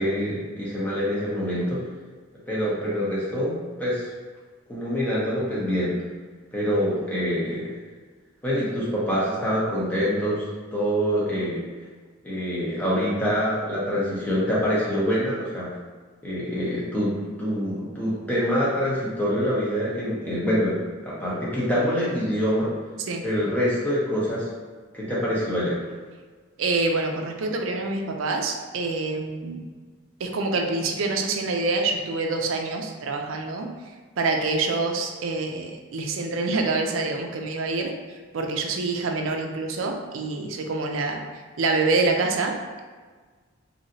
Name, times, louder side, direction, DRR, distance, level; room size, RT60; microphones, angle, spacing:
voice 1, 0.0-1.8 2.5-4.1 4.7-5.9 6.5-7.7 8.4-10.4 10.7-11.6 12.2-15.7 16.2-22.7 23.2-24.5 24.9-25.8, equal, 10° left, -8 dB, 0.7 m, -25 dB
voice 2, 26.6-29.6 30.2-33.7 34.2-37.9 38.3-41.2 41.6-42.8, right 3 dB, 80° right, 3 dB, 0.4 m, -26 dB
3.1 x 2.7 x 2.6 m, 1.4 s
head